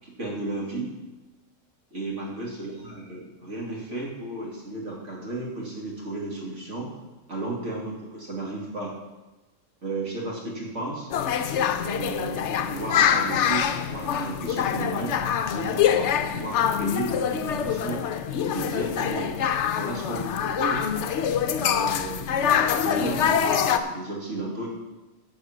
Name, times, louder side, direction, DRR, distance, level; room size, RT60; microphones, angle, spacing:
voice 1, 0.0-0.9 1.9-6.9 7.3-8.9 9.8-11.1 11.8-15.2 15.4-18.0 18.4-19.3 19.7-20.9 21.6-24.7, right 2 dB, 60° right, -3 dB, 2.9 m, -33 dB
sound 1, 11.1-23.8, left 8 dB, 65° left, 0.9 m, -25 dB
10.5 x 5.6 x 7.4 m, 1.1 s
omnidirectional pair, 1.5 m